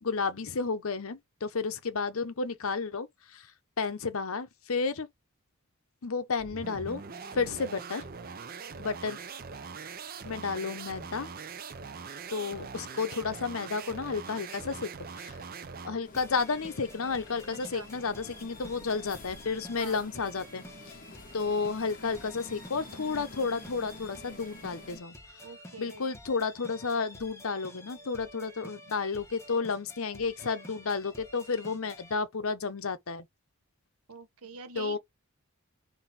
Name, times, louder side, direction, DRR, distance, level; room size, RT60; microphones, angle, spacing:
voice 1, 0.0-3.5 3.8-5.1 6.0-7.0 7.3-8.1 8.8-9.2 10.2-11.3 12.3-15.4 15.8-21.0 21.3-25.1 25.8-33.2 34.8-35.0, left 4 dB, 70° left, 0.8 m, -32 dB
sound 1, 6.4-16.0, right 5 dB, 40° right, 0.6 m, -42 dB
sound 2, 16.0-25.0, left 1 dB, 40° left, 1.2 m, -49 dB
sound 3, 16.1-32.1, left 1 dB, 15° left, 1.1 m, -50 dB
voice 2, 17.5-17.9 19.8-20.1 25.4-26.1 34.1-35.0, right 4 dB, 80° right, 0.9 m, -45 dB
3.8 x 2.7 x 4.1 m
head